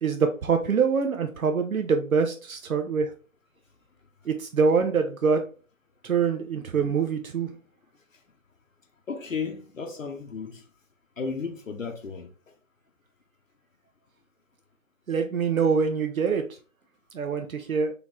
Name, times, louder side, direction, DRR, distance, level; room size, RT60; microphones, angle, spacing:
voice 1, 0.0-3.1 4.3-5.4 6.0-7.5 15.1-16.4 17.1-17.9, right 5 dB, 85° right, 0.7 m, -24 dB
voice 2, 9.1-10.6 11.2-12.3, left 5 dB, 70° left, 0.8 m, -34 dB
3.9 x 2.9 x 3.0 m
figure-of-eight pair, 160°, 41 cm